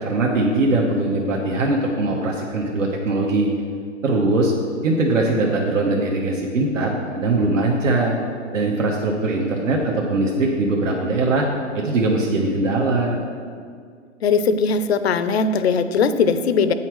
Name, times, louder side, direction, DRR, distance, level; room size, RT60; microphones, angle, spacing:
voice 1, 0.0-3.5 4.0-4.5 4.8-8.2 8.5-11.5 11.7-13.2, right 2 dB, 75° right, -1 dB, 1.2 m, -21 dB
voice 2, 14.2-16.7, left 5 dB, 55° left, 11 dB, 0.6 m, -19 dB
8.1 x 5.7 x 4.6 m, 2.1 s
hypercardioid pair, 150°, 39 cm